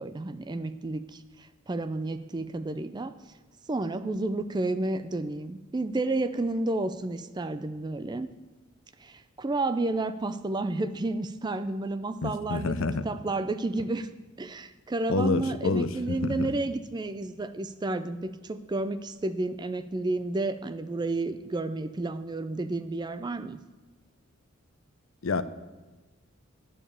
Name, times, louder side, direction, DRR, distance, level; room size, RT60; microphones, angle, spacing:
voice 1, 0.0-3.1 3.7-8.3 9.0-14.1 14.4-23.6, right 2 dB, 20° right, 12 dB, 0.4 m, -31 dB
voice 2, 12.2-13.0 15.1-15.9 16.2-16.5 25.2-25.4, left 3 dB, 70° left, 13 dB, 0.6 m, -27 dB
11.0 x 5.0 x 8.3 m, 1.3 s
head